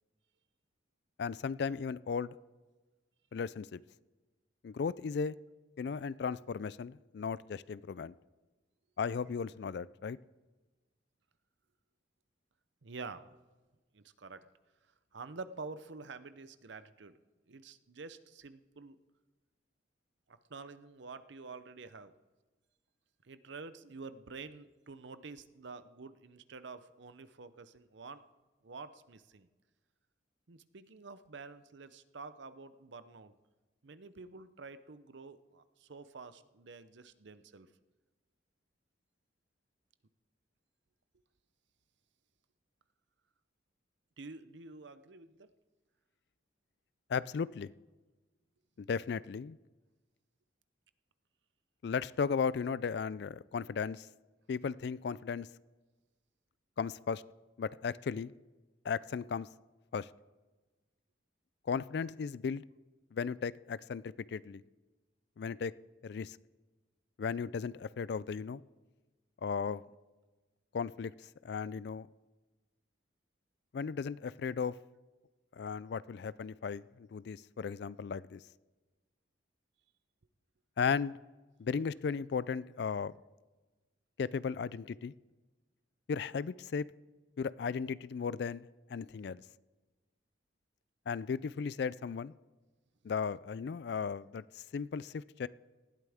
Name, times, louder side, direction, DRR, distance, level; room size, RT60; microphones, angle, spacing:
voice 1, 1.2-2.3 3.3-3.8 4.6-5.3 5.8-8.1 9.0-10.2 47.1-47.7 48.8-49.6 51.8-54.1 54.5-55.5 56.8-57.2 57.6-58.3 58.8-59.5 59.9-60.1 61.7-62.6 63.1-64.6 65.4-65.7 66.0-66.4 67.2-68.6 69.4-69.8 70.7-71.1 71.4-72.1 73.7-74.7 75.5-78.4 80.8-81.2 81.6-83.1 84.2-85.1 86.1-86.9 87.4-89.4 91.1-92.3 93.0-95.5, left 6 dB, 55° left, 19 dB, 0.3 m, -36 dB
voice 2, 12.8-13.4 13.9-14.5 15.1-17.2 17.5-19.0 20.3-22.1 23.2-28.2 28.6-29.5 30.5-33.4 33.8-37.7 44.2-45.5, right 4 dB, 65° right, 12 dB, 0.7 m, -48 dB
19.0 x 12.5 x 3.6 m, 1.2 s
head